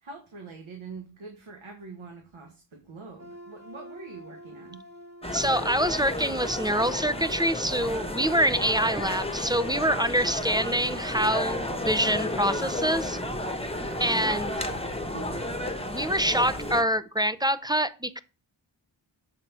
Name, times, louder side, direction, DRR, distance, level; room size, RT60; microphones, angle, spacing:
voice 1, 0.0-4.8 14.2-14.8 15.1-15.5, right 4 dB, 90° right, 3 dB, 1.3 m, -44 dB
sound 1, 3.2-8.6, equal, 35° right, 2.1 m, -47 dB
sound 2, 5.2-16.8, left 1 dB, 10° left, 1.3 m, -32 dB
voice 2, 5.3-13.2 14.0-14.5 15.8-18.2, equal, 10° right, 14 dB, 0.6 m, -25 dB
7.2 x 4.0 x 5.5 m, 0.33 s
wide cardioid pair, 40°, 46 cm